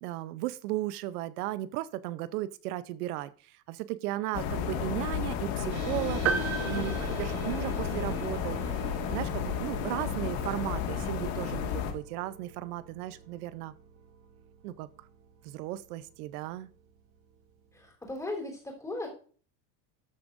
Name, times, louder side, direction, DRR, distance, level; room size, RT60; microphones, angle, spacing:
voice 1, 0.0-13.7 14.6-14.9 15.4-16.7, right 15 dB, 80° right, 15 dB, 0.8 m, -36 dB
sound 1, 4.3-11.9, left 7 dB, 65° left, 2.0 m, -32 dB
sound 2, 5.7-16.6, right 4 dB, 60° right, 3.1 m, -44 dB
sound 3, 6.3-8.0, right 6 dB, 35° right, 0.8 m, -33 dB
voice 2, 6.6-7.1 17.7-19.1, left 2 dB, 5° left, 0 dB, 3.5 m, -38 dB
13.5 x 7.0 x 2.6 m, 0.41 s
supercardioid pair, 140°, 45 cm